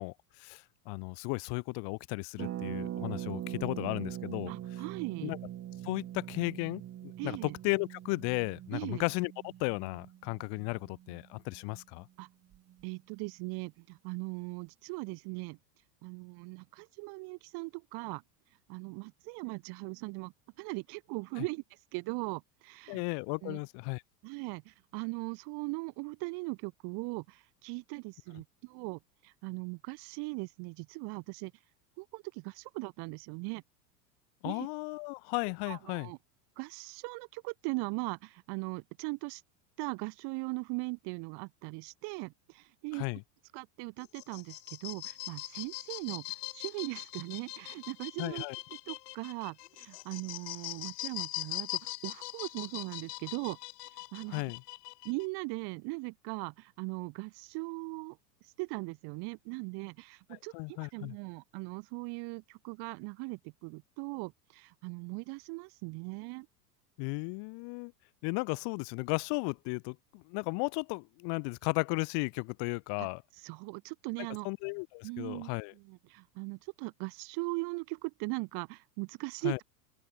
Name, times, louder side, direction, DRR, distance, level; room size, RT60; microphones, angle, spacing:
voice 1, 0.0-4.8 5.2-5.4 5.8-12.1 21.4-21.5 22.9-24.0 34.4-36.1 42.9-43.2 48.2-48.6 54.3-54.6 60.3-61.2 67.0-67.9 68.2-73.2 74.4-75.7 79.4-79.6, left 34 dB, 55° left, 2.0 m, -35 dB
Harp, 2.4-12.0 12.3-12.4 12.5-12.8, right 12 dB, 30° right, 1.3 m, -42 dB
voice 2, 4.5-5.3 7.2-7.5 8.7-9.0 12.2-12.3 12.8-15.6 16.0-18.2 18.7-20.3 20.6-21.6 21.9-23.0 23.4-23.6 24.2-31.5 32.0-33.6 34.4-34.7 35.7-36.2 36.6-39.4 39.8-43.0 43.5-48.5 48.9-53.6 54.1-54.5 55.0-58.2 58.6-66.5 73.0-73.1 73.4-74.5 75.0-75.5 75.8-79.6, right 29 dB, 50° right, 1.7 m, -39 dB
sound 1, 44.0-55.3, left 19 dB, 70° left, 1.2 m, -42 dB
open air
hypercardioid pair, 100°, 49 cm